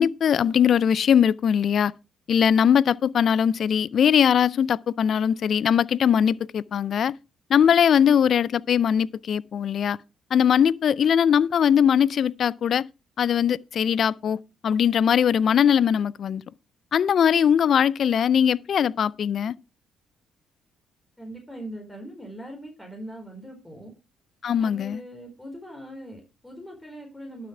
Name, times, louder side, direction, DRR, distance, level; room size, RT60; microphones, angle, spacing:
voice 1, 0.0-1.9 2.3-7.1 7.5-10.0 10.3-12.9 13.2-16.4 16.9-19.6 24.4-25.0, left 8 dB, 60° left, 0.5 m, -21 dB
voice 2, 21.2-23.9 24.6-27.5, right 1 dB, 10° left, 4.2 m, -41 dB
12.0 x 6.8 x 4.8 m
supercardioid pair, 75°, 0 cm